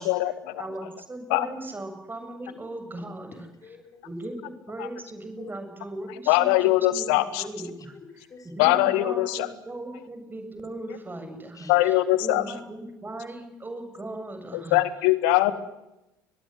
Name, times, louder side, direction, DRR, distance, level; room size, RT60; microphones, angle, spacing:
voice 1, 0.0-0.7 1.3-1.5 4.8-4.9 6.1-7.5 8.6-9.5 10.9-11.0 11.7-12.5 14.5-15.5, left 16 dB, 65° left, 13 dB, 2.0 m, -22 dB
voice 2, 0.6-3.5 4.0-7.0 7.4-7.9 8.4-11.7 12.2-14.8 15.5-15.6, right 1 dB, 20° right, 6 dB, 7.6 m, -38 dB
voice 3, 3.3-4.1 5.4-5.5 7.9-8.5 11.5-11.8, left 5 dB, 35° left, 5 dB, 5.2 m, -48 dB
22.5 x 22.0 x 9.4 m, 0.93 s
figure-of-eight pair, 60°, 10 cm